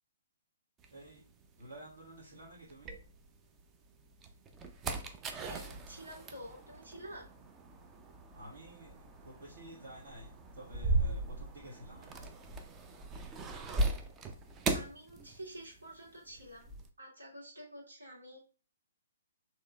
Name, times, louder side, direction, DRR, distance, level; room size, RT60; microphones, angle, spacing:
sound 1, 0.8-3.6 4.0-16.9, right 2 dB, 15° right, 0.5 m, -38 dB
voice 1, 0.9-1.2 1.6-3.0 8.3-12.3, equal, 55° right, -7 dB, 1.6 m, -51 dB
voice 2, 5.4-7.2 14.7-16.7 17.0-18.4, equal, 75° right, -4 dB, 2.3 m, -49 dB
6.2 x 3.1 x 2.4 m, 0.39 s
figure-of-eight pair, 125°, 0 cm